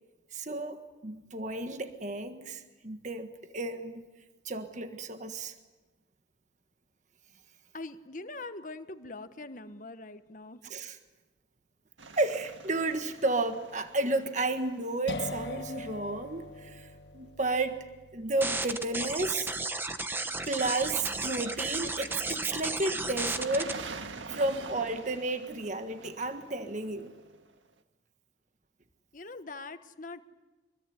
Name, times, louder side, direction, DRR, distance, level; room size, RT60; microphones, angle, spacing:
voice 1, 0.3-4.0 4.4-5.5 10.6-11.0 12.1-17.8 18.1-19.5 20.5-23.8 24.3-27.1, right 2 dB, 40° right, 7 dB, 1.5 m, -32 dB
voice 2, 7.7-10.6 29.1-30.2, left 2 dB, 45° left, 10 dB, 1.2 m, -42 dB
sound 1, 12.0-15.8 20.0-27.7, right 3 dB, 85° right, 1.8 m, -47 dB
sound 2, 15.1-22.6, left 3 dB, 65° left, 1.5 m, -44 dB
sound 3, 18.4-23.7, right 2 dB, 10° right, 1.0 m, -33 dB
25.5 x 22.0 x 9.8 m, 1.2 s
head